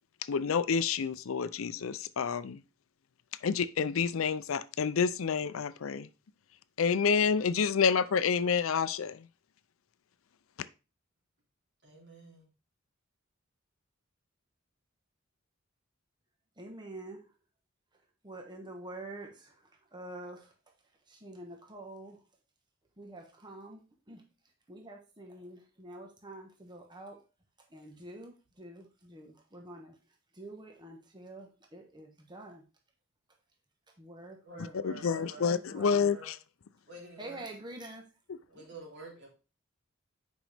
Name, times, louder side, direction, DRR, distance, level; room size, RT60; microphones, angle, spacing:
voice 1, 0.3-2.6 3.4-6.1 6.8-9.3 34.7-36.4, left 6 dB, 80° left, 0.5 m, -28 dB
voice 2, 11.8-12.5 34.4-36.3 36.9-37.5 38.5-39.3, right 2 dB, 60° right, 3.1 m, -50 dB
voice 3, 16.6-17.3 18.2-20.5 21.1-22.2 23.0-23.8 24.1-24.2 24.7-27.2 27.7-30.0 30.3-32.6 34.0-36.0 37.2-38.0 38.5-38.6, right 2 dB, 20° right, 1.2 m, -47 dB
8.9 x 5.3 x 3.4 m
head